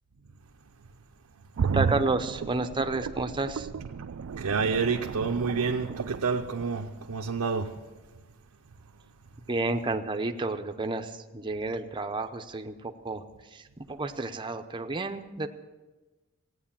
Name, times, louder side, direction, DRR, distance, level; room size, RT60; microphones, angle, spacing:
sound 1, 1.6-7.4 7.8-7.9, right 6 dB, 65° right, 0.4 m, -33 dB
voice 1, 1.7-3.8 9.5-13.2 13.5-15.5, right 3 dB, 20° right, 0.7 m, -31 dB
voice 2, 4.4-7.7, right 5 dB, 90° right, 0.7 m, -28 dB
15.5 x 9.3 x 7.4 m
head